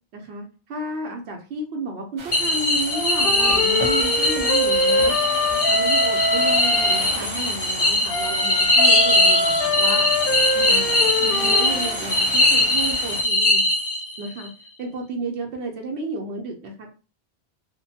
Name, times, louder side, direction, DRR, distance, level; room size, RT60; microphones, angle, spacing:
voice 1, 0.1-5.1 5.5-13.6 14.2-14.5 14.8-16.9, right 2 dB, 85° right, 2 dB, 0.9 m, -32 dB
sound 1, 2.2-13.2, right 3 dB, 50° right, 0.3 m, -36 dB
sound 2, 2.3-14.3, left 2 dB, 30° left, 0.6 m, -21 dB
Wind instrument woodwind instrument, 2.9-7.1 8.1-12.0, left 1 dB, 65° left, 0.7 m, -24 dB
2.5 x 2.2 x 2.7 m, 0.35 s
omnidirectional pair, 1.1 m